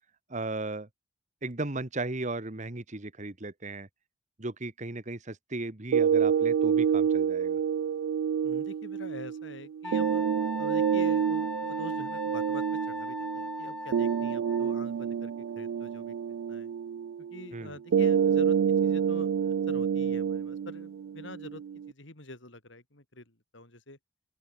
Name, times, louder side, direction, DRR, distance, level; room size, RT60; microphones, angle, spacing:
voice 1, 0.3-0.9 1.4-3.9 4.4-7.6 17.5-17.7, right 2 dB, 35° right, 1.4 m, -36 dB
sound 1, 5.9-21.9, right 7 dB, 75° right, 0.3 m, -28 dB
voice 2, 8.4-10.2 10.6-16.1 16.5-16.7 17.2-18.6 18.8-24.0, left 2 dB, 65° left, 4.3 m, -46 dB
Wind instrument woodwind instrument, 9.8-14.8, left 1 dB, 5° left, 6.1 m, -38 dB
open air
head